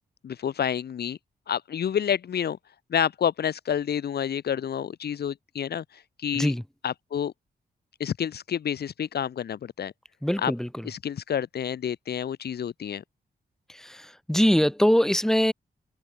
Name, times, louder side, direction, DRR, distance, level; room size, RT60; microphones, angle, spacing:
voice 1, 0.2-1.2 1.5-2.6 2.9-6.5 6.8-7.3 8.0-9.9 10.4-10.5 10.8-13.0, left 8 dB, 80° left, 5.8 m, -29 dB
voice 2, 10.2-10.7 13.7-15.5, equal, 5° left, 1.4 m, -23 dB
cardioid pair, 95°, 16 cm